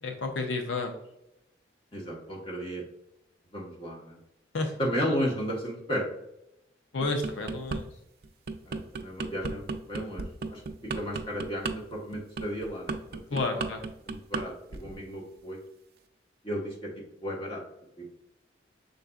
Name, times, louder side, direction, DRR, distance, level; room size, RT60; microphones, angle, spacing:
voice 1, 0.0-1.0 4.5-4.8 6.9-7.9 13.3-13.8, left 3 dB, 80° left, 4 dB, 0.5 m, -31 dB
voice 2, 1.9-2.8 3.5-4.2 4.8-6.0 8.7-10.6 10.9-13.2 13.5-13.7 14.1-15.6 16.4-16.9 17.2-17.6 18.0-18.1, equal, 30° left, -2 dB, 1.2 m, -34 dB
sound 1, 7.0-7.8 8.2-14.4 14.7-15.0, right 4 dB, 50° right, 0.4 m, -34 dB
5.7 x 3.9 x 2.3 m, 0.84 s
head